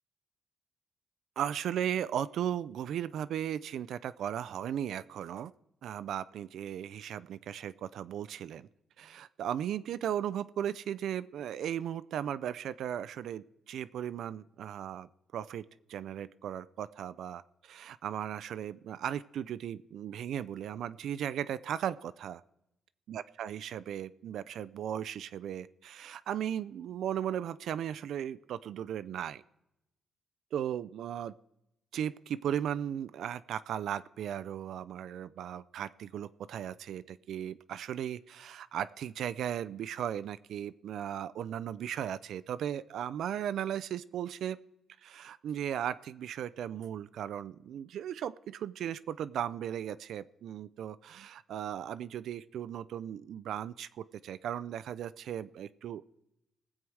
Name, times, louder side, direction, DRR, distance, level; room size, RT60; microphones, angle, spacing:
voice 1, 1.4-5.5 5.8-8.7 9.0-15.6 15.9-22.4 23.1-29.4 30.5-31.3 31.9-44.6 45.0-56.0, right 10 dB, 75° right, 16 dB, 0.3 m, -36 dB
19.5 x 7.6 x 4.7 m, 0.86 s
cardioid pair, 125°, 0 cm